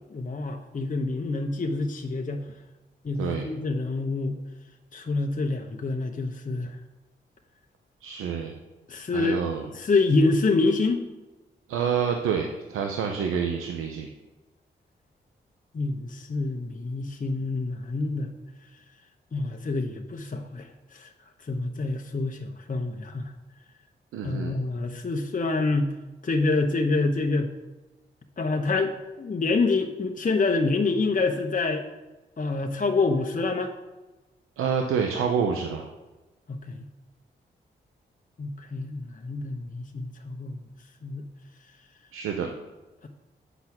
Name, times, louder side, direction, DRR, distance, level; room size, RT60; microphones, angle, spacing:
voice 1, 0.1-2.4 3.0-4.4 4.9-6.8 8.9-9.4 9.7-11.1 15.7-18.3 19.3-21.1 21.5-23.3 24.2-25.9 26.2-27.5 28.4-31.8 32.4-33.7 36.5-36.8 38.4-40.6 41.0-41.3, left 3 dB, 40° left, 3 dB, 1.0 m, -27 dB
voice 2, 3.2-3.5 8.0-8.5 9.1-9.7 11.7-14.1 24.1-24.6 34.6-35.9 42.1-42.5, right 7 dB, 90° right, 3 dB, 0.7 m, -27 dB
8.0 x 6.0 x 5.9 m, 1.1 s
supercardioid pair, 45°, 21 cm